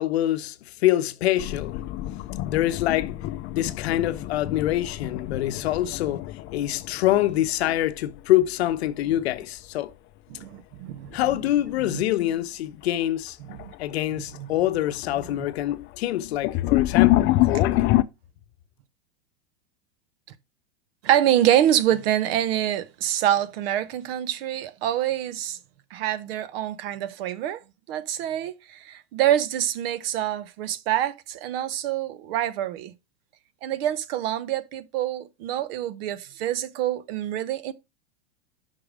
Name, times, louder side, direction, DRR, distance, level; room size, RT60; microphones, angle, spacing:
voice 1, 0.0-1.8 2.5-3.1 3.5-9.9 11.1-13.4 13.8-17.9, left 14 dB, 75° left, 0.7 m, -25 dB
sound 1, 1.4-8.2 8.5-9.4 11.1-11.4 11.9-12.0 13.0-13.1 13.5-13.9 14.3-18.0, left 16 dB, 35° left, 0.4 m, -26 dB
voice 2, 10.3-11.2 11.8-12.0 13.5-13.7 14.4-14.5 15.3-15.4 21.0-25.6 25.9-27.6 27.9-32.9 33.6-37.7, right 11 dB, 60° right, 0.8 m, -26 dB
5.8 x 4.7 x 5.0 m
hypercardioid pair, 115°, 33 cm